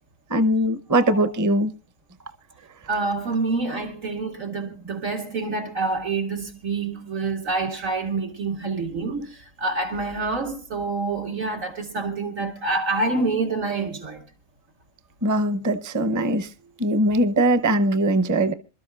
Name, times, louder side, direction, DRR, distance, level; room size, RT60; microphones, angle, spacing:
voice 1, 0.3-1.7 15.2-16.5 16.8-18.5, right 1 dB, 20° right, 0.5 m, -21 dB
voice 2, 0.9-1.3 2.9-14.2, right 3 dB, 85° right, 2.5 m, -27 dB
26.5 x 12.5 x 2.4 m
omnidirectional pair, 1.3 m